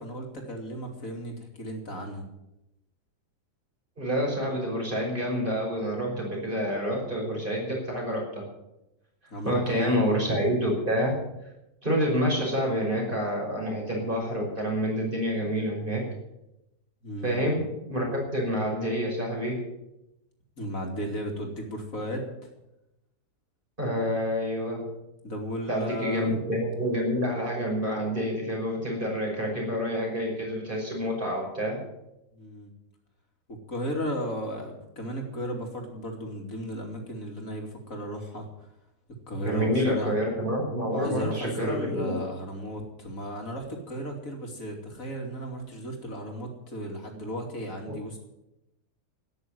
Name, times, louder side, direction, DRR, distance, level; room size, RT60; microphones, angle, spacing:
voice 1, 0.0-2.2 9.3-10.1 17.0-17.4 20.5-22.5 25.2-26.4 32.3-32.7 33.5-38.7 39.3-40.1 40.9-48.2, equal, 50° left, 2 dB, 3.2 m, -35 dB
voice 2, 4.0-8.4 9.4-11.1 11.8-16.0 17.2-19.6 23.8-24.8 25.7-31.8 39.4-42.1, equal, 30° right, -2 dB, 5.8 m, -28 dB
13.0 x 10.0 x 9.3 m, 0.91 s
omnidirectional pair, 1.8 m